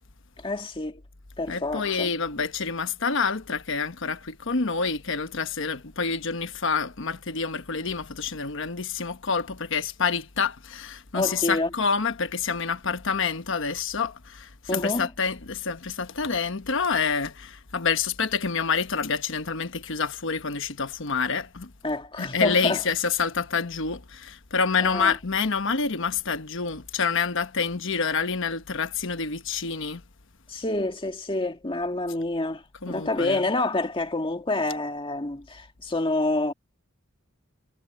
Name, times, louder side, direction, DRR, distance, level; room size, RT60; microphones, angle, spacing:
voice 1, 0.4-1.0 1.4-2.2 11.1-11.7 14.7-15.1 21.8-22.8 24.8-25.1 30.5-36.5, left 2 dB, 25° left, 1.9 m, -28 dB
voice 2, 1.5-21.7 22.2-30.0 32.8-33.4, left 5 dB, 65° left, 1.2 m, -27 dB
head